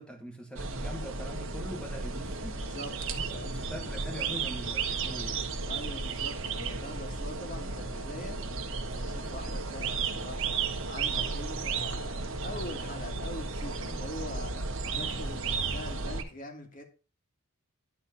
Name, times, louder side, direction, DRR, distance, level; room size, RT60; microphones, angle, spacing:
voice 1, 0.0-2.6 3.1-5.4 11.1-11.3 14.5-15.1, equal, 5° left, 1.7 m, -43 dB
sound 1, 0.6-16.2, right 4 dB, 65° right, 1.3 m, -34 dB
voice 2, 2.5-3.0 3.3-3.7 5.0-5.1 5.6-8.4 8.9-10.5 10.9-14.5 14.9-16.8, left 1 dB, 40° left, 2.1 m, -43 dB
11.0 x 4.3 x 5.4 m
head